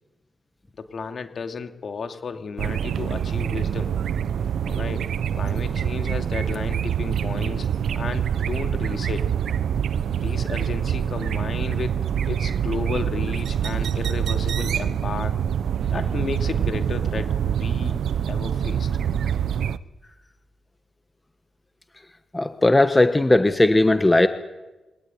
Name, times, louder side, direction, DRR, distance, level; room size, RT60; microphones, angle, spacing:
voice 1, 0.7-3.9 4.6-5.1 5.3-7.7 7.9-9.3 10.2-15.4 15.9-18.0 18.3-19.2, left 5 dB, 60° left, 6 dB, 2.6 m, -33 dB
sound 1, 2.6-19.8, right 8 dB, 80° right, 0.8 m, -25 dB
voice 2, 22.3-24.3, left 2 dB, 15° left, 9 dB, 1.4 m, -17 dB
23.0 x 18.5 x 9.8 m, 1.1 s
cardioid pair, 80°, 0 cm